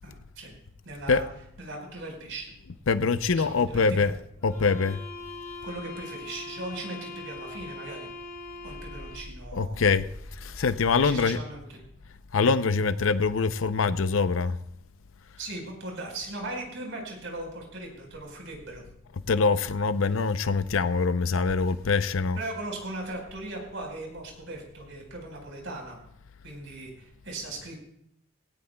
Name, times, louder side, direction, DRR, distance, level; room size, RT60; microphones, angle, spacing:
voice 1, 0.0-0.5 0.8-1.2 1.6-2.5 3.3-4.1 5.6-8.1 8.6-9.8 11.0-11.8 15.4-18.8 22.3-26.0 26.4-27.8, right 2 dB, 70° right, 1 dB, 4.6 m, -38 dB
voice 2, 2.9-4.1 4.4-5.0 9.5-11.4 12.3-14.6 19.3-22.4, left 4 dB, 85° left, 13 dB, 0.6 m, -24 dB
sound 1, 4.4-9.4, left 3 dB, 15° left, 4.4 m, -41 dB
sound 2, 8.6-11.3, left 1 dB, 55° left, 5.3 m, -44 dB
17.5 x 17.0 x 2.3 m, 0.70 s
head